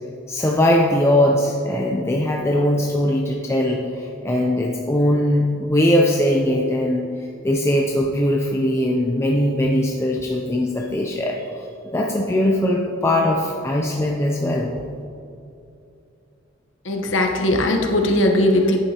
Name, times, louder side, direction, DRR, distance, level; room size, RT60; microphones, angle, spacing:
voice 1, 0.3-7.0 7.4-14.7, left 1 dB, 15° left, -1 dB, 0.5 m, -20 dB
voice 2, 16.8-18.8, left 1 dB, 75° left, 2 dB, 1.0 m, -19 dB
10.5 x 8.7 x 2.8 m, 2.6 s
head